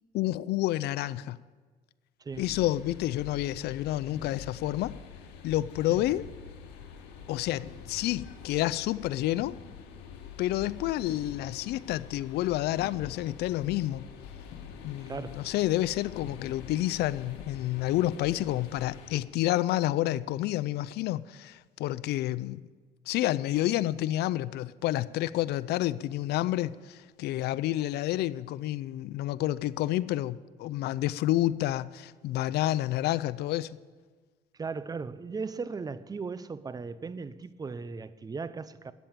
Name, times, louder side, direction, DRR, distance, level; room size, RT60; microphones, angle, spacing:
voice 1, 0.1-1.4 2.4-4.9 5.4-6.3 7.3-9.5 10.4-14.1 14.8-22.6 23.1-33.8, left 15 dB, 75° left, 0.5 m, -29 dB
sound 1, 2.3-19.2, left 7 dB, 90° left, 1.8 m, -46 dB
voice 2, 15.1-15.4 34.6-38.9, right 4 dB, 20° right, 0.7 m, -37 dB
13.5 x 8.4 x 8.9 m
cardioid pair, 110°, 17 cm